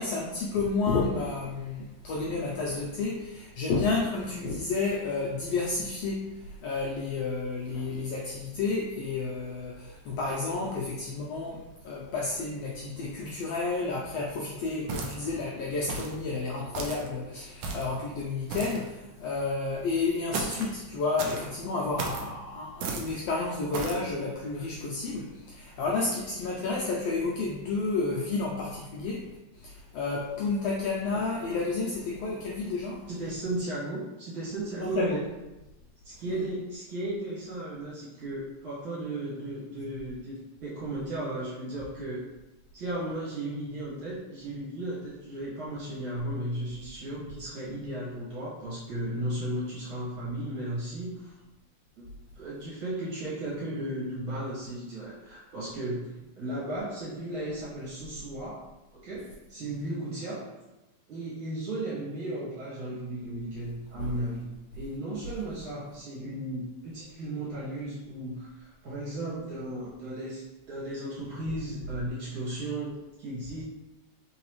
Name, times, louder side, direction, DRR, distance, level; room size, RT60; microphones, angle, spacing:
voice 1, 0.0-29.2 29.5-33.0 34.8-35.2 36.3-36.4, left 3 dB, 85° left, -3 dB, 1.4 m, -31 dB
sound 1, 14.9-15.4 15.9-16.2 16.7-17.1 17.6-18.0 18.5-18.9 20.3-20.7 21.2-21.5 22.0-22.3 22.8-23.1 23.7-24.0, right 3 dB, 85° right, 1.3 m, -34 dB
voice 2, 33.1-35.2 36.0-40.3 40.6-42.2 42.7-51.3 52.0-52.1 52.4-56.1 56.4-58.6 58.9-60.5 61.1-64.5 64.7-72.9 73.2-73.6, right 1 dB, 55° right, -8 dB, 1.7 m, -35 dB
3.9 x 3.8 x 3.0 m, 1.1 s
omnidirectional pair, 3.3 m